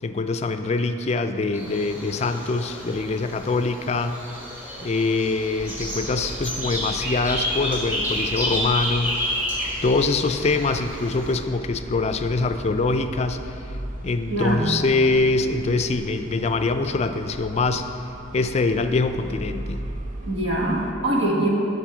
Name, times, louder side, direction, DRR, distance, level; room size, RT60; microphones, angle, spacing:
voice 1, 0.0-4.2 4.8-9.3 9.8-13.6 14.0-17.9 18.3-19.9, left 3 dB, 35° left, 8 dB, 0.4 m, -24 dB
sound 1, 1.5-11.4, equal, 10° right, 1.4 m, -30 dB
sound 2, 5.6-20.9, right 1 dB, 40° right, 0.6 m, -38 dB
voice 2, 14.3-14.7 20.2-21.5, right 1 dB, 80° right, -2 dB, 1.5 m, -23 dB
8.9 x 6.6 x 4.9 m, 2.8 s
head